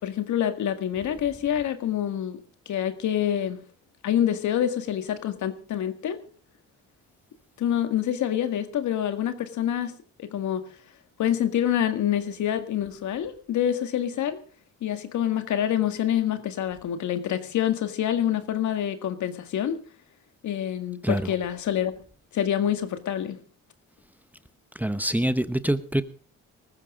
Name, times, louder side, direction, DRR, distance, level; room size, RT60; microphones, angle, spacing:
voice 1, 0.0-3.6 4.0-6.2 7.6-9.9 10.2-10.6 11.2-14.4 14.8-19.8 20.4-21.9 22.3-23.4, left 10 dB, 75° left, 1.9 m, -26 dB
voice 2, 24.8-26.0, right 1 dB, 5° right, 0.9 m, -25 dB
19.5 x 14.5 x 3.7 m
cardioid pair, 90°, 30 cm